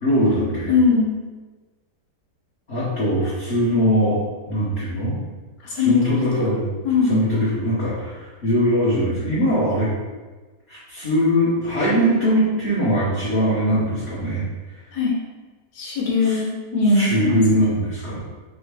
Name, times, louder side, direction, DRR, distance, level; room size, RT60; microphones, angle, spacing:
voice 1, 0.0-0.7 2.7-4.2 4.5-5.2 5.7-6.6 7.1-9.9 10.7-14.5 16.2-16.4 16.9-18.2, equal, 45° left, -10 dB, 1.1 m, -21 dB
voice 2, 0.7-1.2 5.6-6.2 6.8-7.2 14.9-15.1 15.7-17.4, left 4 dB, 85° left, -2 dB, 1.5 m, -20 dB
3.5 x 3.4 x 3.4 m, 1.3 s
omnidirectional pair, 1.8 m